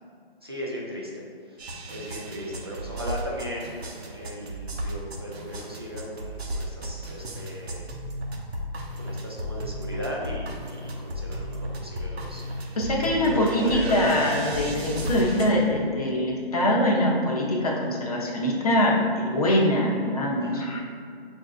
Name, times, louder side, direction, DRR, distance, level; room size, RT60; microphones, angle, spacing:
voice 1, 0.4-7.9 9.0-12.8 13.2-13.8 20.4-20.7, equal, 25° right, -4 dB, 0.3 m, -37 dB
sound 1, 1.6-15.5, equal, 85° right, 0.8 m, -34 dB
voice 2, 12.8-20.8, left 1 dB, 40° left, -2 dB, 0.6 m, -23 dB
5.7 x 2.5 x 2.3 m, 2.2 s
hypercardioid pair, 165°, 31 cm